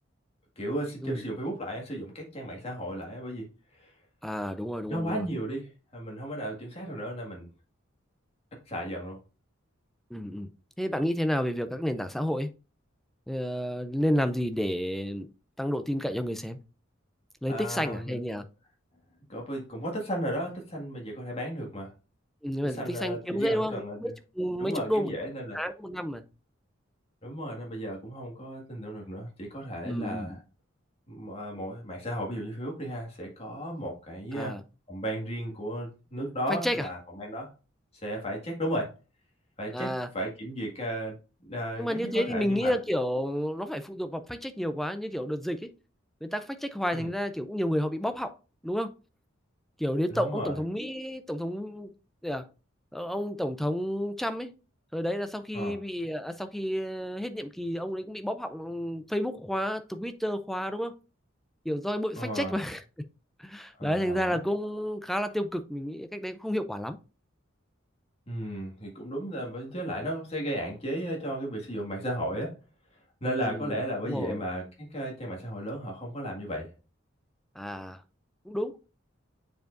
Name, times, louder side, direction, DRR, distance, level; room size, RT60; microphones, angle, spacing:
voice 1, 0.6-3.5 3.7-3.9 4.9-7.5 8.7-9.2 17.5-18.2 19.3-21.9 22.6-24.1 24.6-25.6 27.2-30.4 31.1-34.6 34.9-37.5 38.0-38.9 39.6-42.8 46.9-47.1 50.1-50.6 55.5-55.8 62.2-62.5 63.8-64.4 68.3-72.6 73.2-76.7, equal, 30° left, 1.9 m, -35 dB
voice 2, 4.2-5.3 10.1-10.5 10.8-12.5 13.3-15.3 15.6-16.6 17.4-18.4 22.4-25.1 25.5-26.2 29.8-30.4 34.3-34.6 36.5-36.9 39.7-40.1 41.8-45.7 46.2-48.3 48.6-48.9 49.8-51.9 52.2-52.5 52.9-54.5 54.9-60.9 61.6-62.8 63.4-67.0 73.3-73.8 74.0-74.4 77.6-78.0 78.4-78.8, equal, ahead, 0.4 m, -31 dB
7.6 x 4.7 x 2.6 m
head